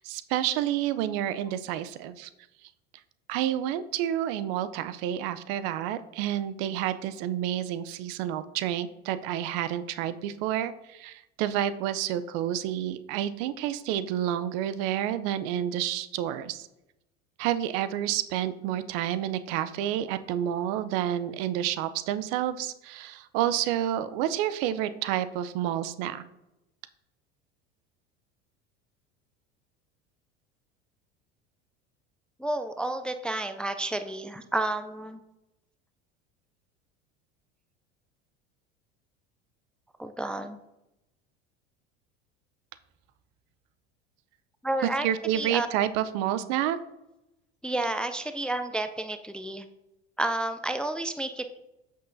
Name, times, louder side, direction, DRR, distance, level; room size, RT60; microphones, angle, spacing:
voice 1, 0.0-2.3 3.3-16.7 17.4-26.2 45.0-46.8, right 11 dB, 65° right, 13 dB, 0.6 m, -29 dB
voice 2, 32.4-35.2 40.0-40.6 44.6-45.1 45.3-45.7 47.6-49.7 50.2-51.4, right 2 dB, 5° left, 9 dB, 0.3 m, -30 dB
8.0 x 6.4 x 2.6 m, 0.91 s
hypercardioid pair, 90°, 31 cm